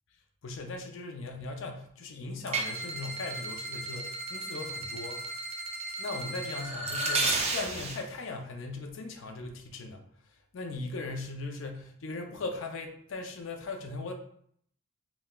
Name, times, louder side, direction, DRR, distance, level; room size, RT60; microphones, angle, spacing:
voice 1, 0.4-5.3 6.0-10.0 10.5-14.1, left 3 dB, 60° left, 3 dB, 0.4 m, -38 dB
sound 1, 2.5-8.0, right 2 dB, 30° right, 0.3 m, -33 dB
4.0 x 2.1 x 2.2 m, 0.66 s
head